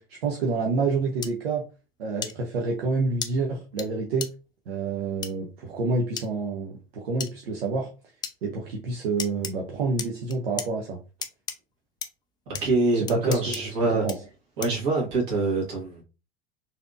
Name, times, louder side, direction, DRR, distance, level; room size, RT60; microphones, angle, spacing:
voice 1, 0.0-1.6 2.0-4.3 4.7-7.9 8.4-11.0 12.9-14.2, right 3 dB, 75° right, 1 dB, 0.7 m, -28 dB
sound 1, 1.2-1.3 2.2-2.3 3.2-3.3 3.8-3.9 4.2-4.3 5.2-5.3 6.2-6.3 7.2-7.3 8.2-8.3 9.2-9.5 10.0-10.7 11.2-11.6 12.0-12.1 12.5-12.6 13.1-13.6 14.1-14.2 14.6-14.8, left 7 dB, 15° left, 0.3 m, -33 dB
voice 2, 12.6-14.1 14.6-16.0, right 3 dB, 55° right, -2 dB, 1.6 m, -25 dB
3.3 x 2.8 x 2.4 m, 0.32 s
figure-of-eight pair, 80°, 30 cm